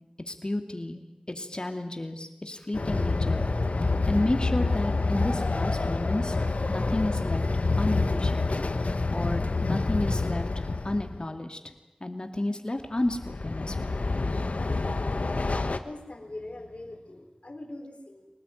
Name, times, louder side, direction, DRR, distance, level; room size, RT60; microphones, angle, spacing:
voice 1, 0.3-3.4 4.1-6.4 6.7-7.5 7.8-11.7 12.0-14.0, left 1 dB, 40° left, 5 dB, 2.6 m, -32 dB
Train, 2.7-11.2 13.1-15.8, left 3 dB, 80° left, 1.3 m, -27 dB
voice 2, 15.8-18.3, left 2 dB, 60° left, 4 dB, 4.4 m, -42 dB
24.5 x 19.0 x 9.2 m, 1.0 s
wide cardioid pair, 55°, 2 cm